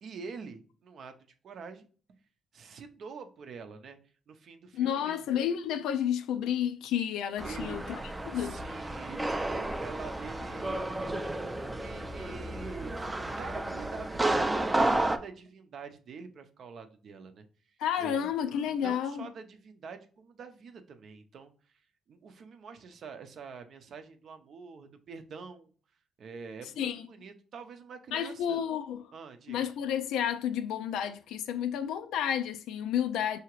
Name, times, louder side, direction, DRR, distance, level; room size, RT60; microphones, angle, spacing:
voice 1, 0.0-1.9 2.5-4.0 4.3-5.2 7.4-7.8 8.3-13.0 13.3-17.5 18.0-18.3 18.6-21.5 22.1-25.7 26.2-28.6 29.1-29.6, right 5 dB, 60° right, 0.6 m, -46 dB
voice 2, 4.7-7.8 8.3-8.6 17.8-19.3 26.8-27.1 28.1-29.0 29.5-33.4, left 9 dB, 90° left, 0.3 m, -31 dB
sound 1, 7.4-15.2, right 2 dB, 15° right, 0.4 m, -32 dB
4.8 x 2.8 x 3.0 m
cardioid pair, 90°, 0 cm